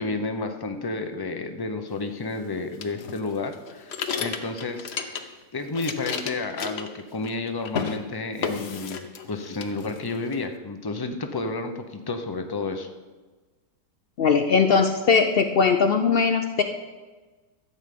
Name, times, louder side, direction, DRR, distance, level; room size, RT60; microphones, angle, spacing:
voice 1, 0.0-3.9 4.2-5.2 5.5-12.9, left 3 dB, 25° left, 6 dB, 0.5 m, -31 dB
sound 1, 2.8-5.4 5.7-7.4 7.6-8.0 8.4-9.3 9.6-10.4, left 6 dB, 50° left, 0.9 m, -32 dB
voice 2, 14.2-16.6, left 5 dB, 85° left, 7 dB, 0.5 m, -20 dB
13.0 x 5.5 x 8.4 m, 1.3 s
omnidirectional pair, 1.8 m